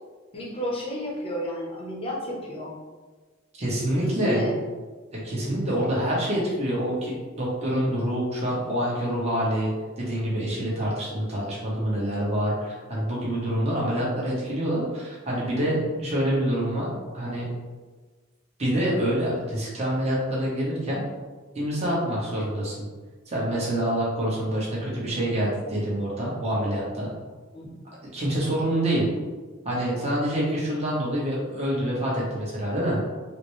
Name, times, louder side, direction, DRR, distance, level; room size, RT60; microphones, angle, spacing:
voice 1, 0.3-2.7 4.0-4.5 27.5-27.7 28.4-28.5, equal, 30° left, -2 dB, 0.7 m, -31 dB
voice 2, 3.5-4.5 5.1-17.5 18.6-21.0 21.5-22.9 23.3-27.1 28.1-29.0 29.6-33.0, right 1 dB, 35° right, -6 dB, 1.0 m, -26 dB
4.1 x 2.1 x 3.1 m, 1.3 s
head